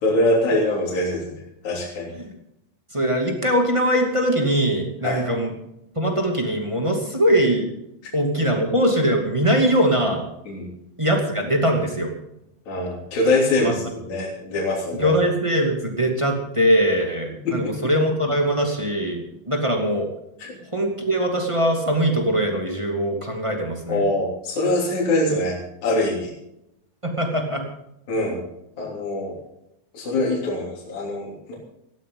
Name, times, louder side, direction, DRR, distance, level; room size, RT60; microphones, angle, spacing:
voice 1, 0.0-1.3 1.6-2.1 5.0-5.2 10.5-10.7 12.7-15.1 17.5-17.9 23.9-26.3 28.1-28.4 28.8-29.3 29.9-31.5, left 1 dB, 55° left, -4 dB, 4.6 m, -23 dB
voice 2, 2.9-5.5 6.0-7.7 8.1-10.2 11.0-12.1 13.6-13.8 15.0-20.1 20.7-24.0 27.0-27.6, equal, 10° right, 1 dB, 2.0 m, -21 dB
17.5 x 14.5 x 3.9 m, 0.81 s
omnidirectional pair, 4.0 m